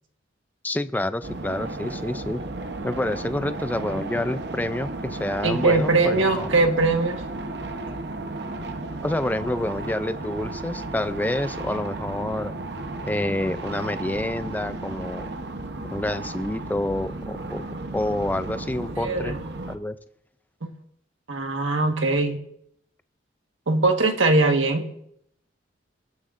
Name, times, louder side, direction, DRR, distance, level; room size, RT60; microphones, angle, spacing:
voice 1, 0.6-2.4 2.8-6.5 9.0-12.5 13.0-15.3 15.9-17.6 17.9-19.4 19.7-20.0, left 1 dB, 10° left, 12 dB, 0.4 m, -28 dB
sound 1, 1.2-19.8, right 2 dB, 60° right, 0.9 m, -34 dB
voice 2, 5.4-7.2 19.0-19.4 20.6-20.7 21.3-22.4 23.7-24.8, right 3 dB, 80° right, 5 dB, 1.4 m, -21 dB
19.5 x 9.6 x 2.5 m, 0.74 s
head